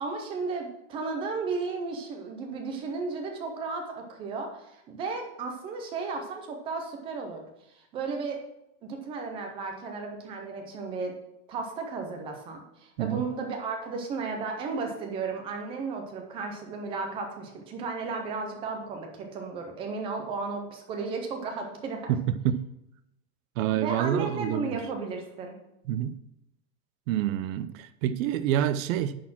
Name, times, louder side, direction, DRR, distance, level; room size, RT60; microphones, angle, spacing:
voice 1, 0.0-7.4 7.7-8.4 8.8-11.2 11.5-22.1 23.7-25.6, right 4 dB, 15° right, 0.3 m, -34 dB
voice 2, 22.1-22.6 23.6-24.8 25.9-26.1 27.1-29.1, right 11 dB, 60° right, 0.6 m, -27 dB
10.0 x 4.2 x 5.9 m
supercardioid pair, 160°, 47 cm